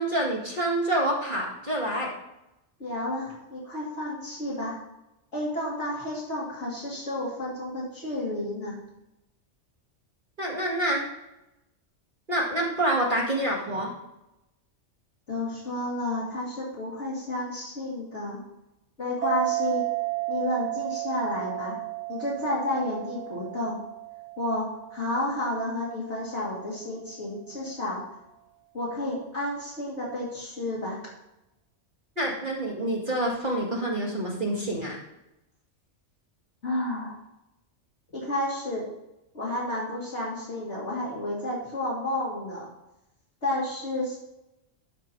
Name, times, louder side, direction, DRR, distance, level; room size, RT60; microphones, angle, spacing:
voice 1, 0.0-2.1 10.4-11.0 12.3-13.9 32.2-35.0, right 1 dB, 40° right, -4 dB, 2.2 m, -27 dB
voice 2, 2.8-4.8 5.3-8.8 15.3-18.4 19.0-19.9 20.3-21.8 22.1-23.8 24.4-28.0 28.7-31.1 36.6-37.1 38.1-38.9 39.3-42.7 43.4-44.2, left 1 dB, 65° left, -8 dB, 2.8 m, -31 dB
sound 1, 19.2-26.3, right 21 dB, 75° right, 0.3 m, -33 dB
12.0 x 4.8 x 4.6 m, 0.91 s
omnidirectional pair, 1.3 m